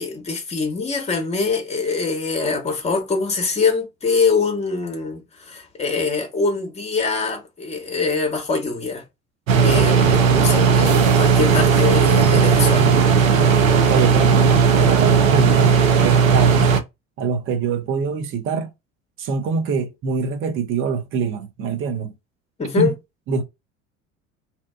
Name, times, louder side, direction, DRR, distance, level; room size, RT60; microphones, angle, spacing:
voice 1, 0.0-9.0 9.6-12.9 22.6-22.9, left 4 dB, 15° left, 0.9 m, -23 dB
sound 1, 9.5-16.8, right 6 dB, 75° right, 0.6 m, -15 dB
voice 2, 13.9-16.7 17.2-18.7 19.2-22.1 22.8-22.9 23.3-23.4, right 5 dB, 30° right, 0.6 m, -24 dB
2.8 x 2.2 x 2.3 m
figure-of-eight pair, 65°, 40 cm